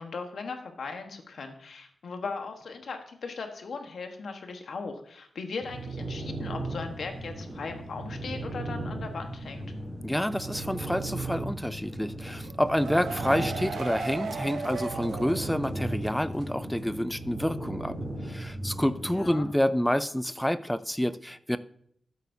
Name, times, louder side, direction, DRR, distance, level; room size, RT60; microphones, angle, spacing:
voice 1, 0.0-9.7 13.2-13.4 19.1-19.5, left 4 dB, 65° left, 5 dB, 1.2 m, -38 dB
sound 1, 5.6-19.4, right 2 dB, 20° right, 4.2 m, -37 dB
voice 2, 10.0-18.0 18.2-21.6, equal, 5° left, 14 dB, 0.3 m, -28 dB
sound 2, 12.4-16.1 16.4-16.5 16.8-16.9, right 5 dB, 85° right, 0.8 m, -36 dB
12.5 x 8.3 x 2.7 m, 0.66 s
wide cardioid pair, 175°, 0 cm